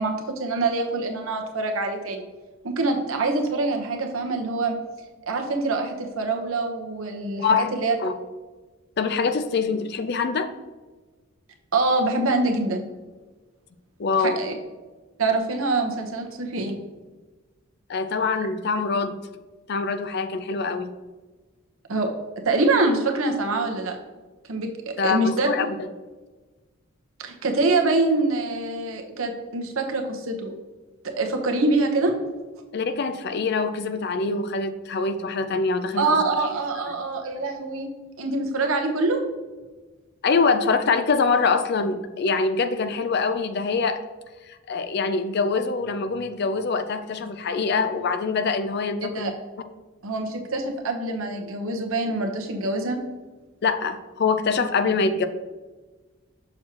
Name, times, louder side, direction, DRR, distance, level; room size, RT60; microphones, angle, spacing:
voice 1, 0.0-2.2 2.6-4.8 5.3-7.9 11.7-12.9 14.2-14.5 15.2-16.8 21.9-22.1 22.4-24.0 24.5-25.5 27.2-30.5 31.0-32.1 36.0-37.9 38.2-39.2 49.1-49.3 50.0-53.0, right 3 dB, 75° right, 3 dB, 1.0 m, -25 dB
voice 2, 9.0-10.5 14.0-14.4 17.9-19.2 19.7-20.9 25.0-25.7 32.7-36.1 36.9-37.0 40.2-44.0 44.5-49.3 53.6-55.3, left 4 dB, 50° left, 10 dB, 0.4 m, -24 dB
6.4 x 6.1 x 2.9 m, 1.3 s
head